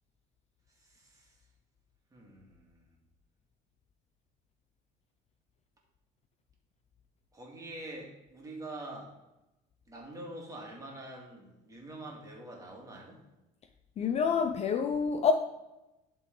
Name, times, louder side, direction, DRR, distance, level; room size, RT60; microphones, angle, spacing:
voice 1, 0.8-1.4 2.1-3.0 7.3-9.1 9.9-13.2, right 1 dB, 20° right, -1 dB, 2.1 m, -45 dB
voice 2, 14.0-15.3, left 6 dB, 40° left, 7 dB, 0.5 m, -27 dB
11.0 x 3.8 x 3.8 m, 0.97 s
cardioid pair, 110°, 17 cm